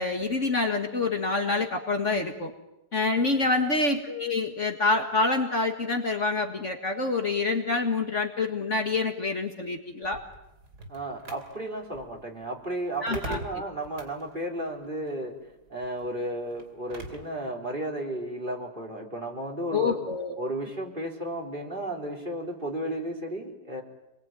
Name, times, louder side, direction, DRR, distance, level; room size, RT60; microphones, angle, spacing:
voice 1, 0.0-2.5 2.9-10.2 13.0-13.4 19.7-20.3, left 3 dB, 45° left, 4 dB, 2.0 m, -27 dB
voice 2, 3.2-3.5 10.9-15.3 15.7-20.0 20.4-23.8, right 1 dB, 25° right, 0 dB, 4.1 m, -34 dB
sound 1, 10.0-17.4, right 2 dB, 60° right, 3.4 m, -44 dB
27.5 x 21.0 x 9.2 m, 0.94 s
omnidirectional pair, 1.9 m